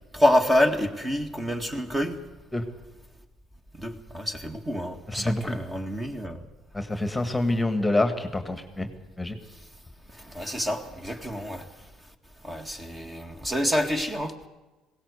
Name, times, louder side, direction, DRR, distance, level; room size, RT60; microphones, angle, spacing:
voice 1, 0.1-2.2 3.8-6.4 10.2-11.7 12.4-14.5, left 1 dB, 15° right, 5 dB, 1.8 m, -27 dB
voice 2, 5.1-5.6 6.7-8.9 9.2-9.4, left 2 dB, 5° left, 8 dB, 1.8 m, -26 dB
20.5 x 17.5 x 8.2 m, 1.2 s
cardioid pair, 130°, 0 cm